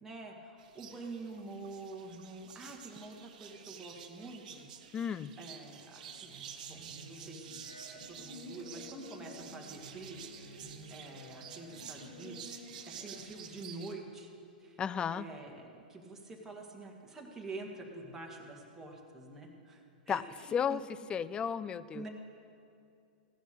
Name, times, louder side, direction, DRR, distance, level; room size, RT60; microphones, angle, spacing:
voice 1, 0.0-4.7 5.4-6.3 6.7-7.6 7.9-12.6 12.9-14.3 14.6-14.8 15.1-20.8 21.9-22.1, right 2 dB, 10° right, -2 dB, 1.9 m, -47 dB
sound 1, 0.6-13.9, right 8 dB, 55° right, 1.1 m, -50 dB
voice 2, 4.9-5.3 14.8-15.3 20.1-20.2 20.5-20.8 21.1-22.1, left 7 dB, 20° left, 17 dB, 0.4 m, -33 dB
sound 2, 6.0-13.2, equal, 70° left, 4.1 m, -51 dB
15.5 x 10.0 x 6.7 m, 2.5 s
figure-of-eight pair, 100°, 5 cm